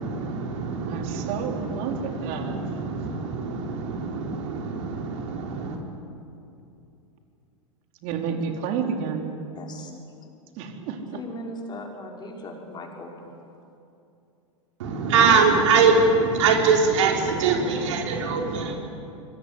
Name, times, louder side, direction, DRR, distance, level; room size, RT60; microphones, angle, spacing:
voice 1, 0.0-5.8 14.8-18.8, right 4 dB, 65° right, 1 dB, 4.3 m, -23 dB
voice 2, 0.9-2.6 8.0-9.3 10.6-11.2, right 6 dB, 45° right, 3 dB, 4.1 m, -30 dB
voice 3, 9.6-9.9 11.1-13.3, left 1 dB, 25° left, 1 dB, 5.5 m, -38 dB
25.5 x 23.0 x 8.5 m, 2.7 s
hypercardioid pair, 100°, 17 cm